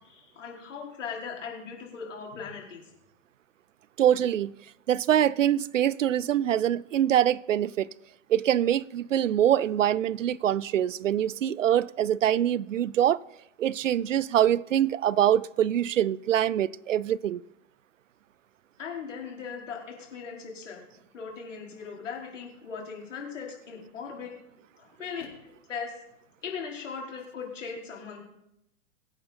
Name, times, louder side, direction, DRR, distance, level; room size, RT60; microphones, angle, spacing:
voice 1, 0.0-2.8 18.8-20.8 21.1-24.3 24.8-25.9 26.4-28.2, left 6 dB, 70° left, 4.8 m, -39 dB
voice 2, 4.0-4.5 4.9-7.9 8.3-13.2 13.6-17.4, right 11 dB, 75° right, 0.6 m, -24 dB
24.0 x 8.9 x 4.4 m
figure-of-eight pair, 110°, 38 cm